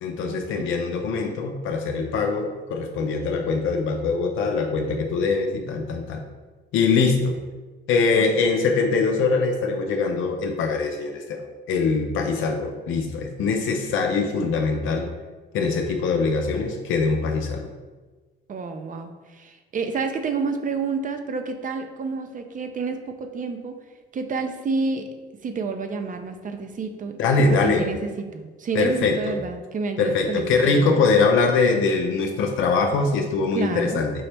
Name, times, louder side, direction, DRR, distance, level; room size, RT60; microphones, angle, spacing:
voice 1, 0.0-6.2 6.7-7.3 7.9-15.1 15.5-17.7 27.2-27.9 28.7-29.3 30.0-34.1, left 4 dB, 85° left, 3 dB, 0.5 m, -22 dB
voice 2, 18.5-23.8 24.1-25.1 25.4-30.9 33.5-34.0, right 4 dB, 40° right, 6 dB, 0.6 m, -29 dB
5.4 x 2.9 x 3.3 m, 1.3 s
cardioid pair, 90°, 20 cm